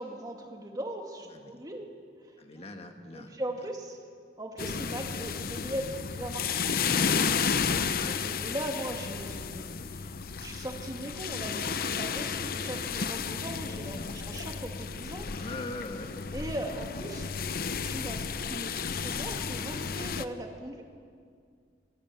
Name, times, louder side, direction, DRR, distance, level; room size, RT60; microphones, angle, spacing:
voice 1, 0.0-1.9 2.5-2.7 3.1-4.0 4.4-10.1 10.4-15.3 16.3-17.4 17.8-20.8, right 1 dB, 20° right, 2 dB, 2.3 m, -39 dB
voice 2, 1.3-1.6 2.4-3.3 7.9-8.2 13.6-14.2 15.3-16.1, left 2 dB, 35° left, 4 dB, 1.5 m, -41 dB
sound 1, 4.6-20.2, left 6 dB, 55° left, 0.7 m, -32 dB
24.5 x 21.5 x 7.0 m, 2.1 s
head